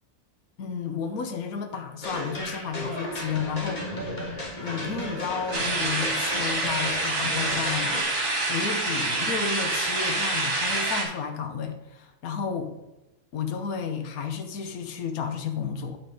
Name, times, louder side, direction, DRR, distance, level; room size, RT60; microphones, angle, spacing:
voice 1, 0.6-3.8 4.6-8.0 8.5-12.7 13.3-16.0, left 6 dB, 65° left, 6 dB, 1.4 m, -32 dB
sound 1, 2.0-8.0, left 1 dB, 30° left, 1.8 m, -34 dB
sound 2, 5.5-11.0, right 2 dB, 70° right, 2.7 m, -27 dB
9.1 x 5.6 x 4.9 m, 0.97 s
omnidirectional pair, 1.7 m